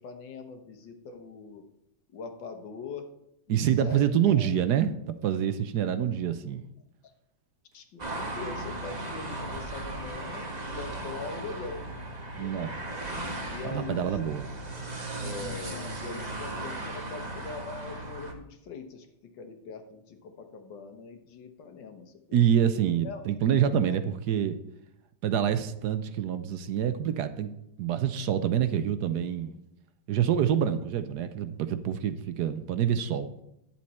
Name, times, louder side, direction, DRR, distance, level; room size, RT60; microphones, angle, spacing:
voice 1, 0.0-1.7 2.1-3.1 3.5-4.5 7.7-11.9 12.4-12.7 13.4-14.3 15.2-22.4 23.0-23.2 23.7-24.0, left 4 dB, 90° left, 6 dB, 1.8 m, -42 dB
voice 2, 3.5-6.6 12.4-12.8 13.6-14.5 22.3-24.6 25.2-27.5 27.8-29.5 30.1-33.3, right 9 dB, 70° right, 11 dB, 1.1 m, -26 dB
sound 1, 8.0-18.3, right 2 dB, 25° right, 1.2 m, -37 dB
10.0 x 7.4 x 4.2 m, 0.83 s
omnidirectional pair, 1.9 m